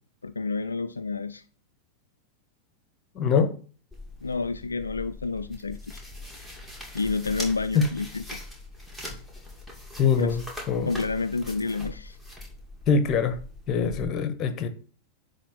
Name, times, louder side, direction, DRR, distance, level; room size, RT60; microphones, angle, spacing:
voice 1, 0.2-1.4 4.2-5.8 6.9-8.4 10.2-10.4 10.9-12.2, left 4 dB, 75° left, 0.3 m, -29 dB
voice 2, 3.1-3.5 7.7-7.9 10.0-10.9 12.9-13.4 13.7-14.7, left 5 dB, 30° left, 1.1 m, -23 dB
sound 1, 3.9-14.0, left 1 dB, 5° right, 2.4 m, -41 dB
9.9 x 3.4 x 5.9 m
figure-of-eight pair, 90°, 0 cm